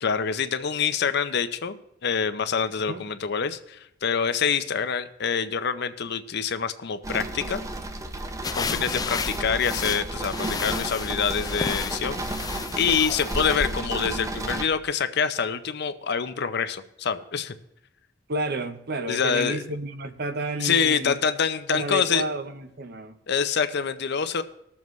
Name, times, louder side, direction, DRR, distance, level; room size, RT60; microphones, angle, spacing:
voice 1, 0.0-7.6 8.5-12.2 12.8-17.5 19.1-19.6 20.6-22.2 23.3-24.4, left 6 dB, 60° left, 11 dB, 0.6 m, -26 dB
sound 1, 7.0-14.7, right 1 dB, 15° right, 0.6 m, -32 dB
sound 2, 8.4-13.7, left 5 dB, 20° left, 0.4 m, -33 dB
voice 2, 8.6-8.9 18.3-21.2 21.7-23.2, right 2 dB, 55° right, 9 dB, 0.8 m, -31 dB
20.0 x 7.2 x 3.1 m, 0.83 s
head